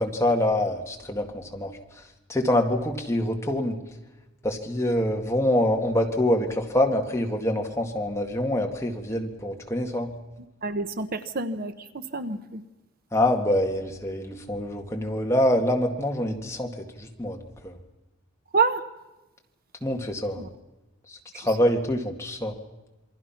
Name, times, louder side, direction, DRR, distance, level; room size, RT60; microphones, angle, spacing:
voice 1, 0.0-2.0 2.3-3.8 4.4-10.1 13.1-17.7 19.8-20.4 21.1-22.6, left 1 dB, 15° left, 2 dB, 2.1 m, -25 dB
voice 2, 10.6-12.6 18.5-18.8 20.4-20.5 21.3-21.5, right 4 dB, 50° right, 10 dB, 1.0 m, -28 dB
27.5 x 23.0 x 5.9 m, 1.0 s
head